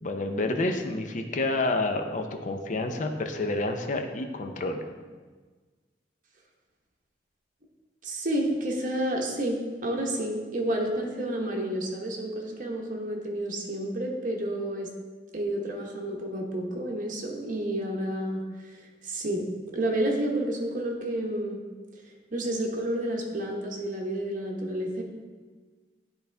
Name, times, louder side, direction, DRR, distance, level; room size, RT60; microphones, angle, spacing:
voice 1, 0.0-4.8, left 2 dB, 45° left, 5 dB, 0.6 m, -29 dB
voice 2, 8.0-14.9 15.3-18.4 19.0-19.5 19.7-21.6 22.3-25.0, right 1 dB, 50° right, 0 dB, 1.0 m, -30 dB
10.0 x 4.0 x 3.4 m, 1.4 s
head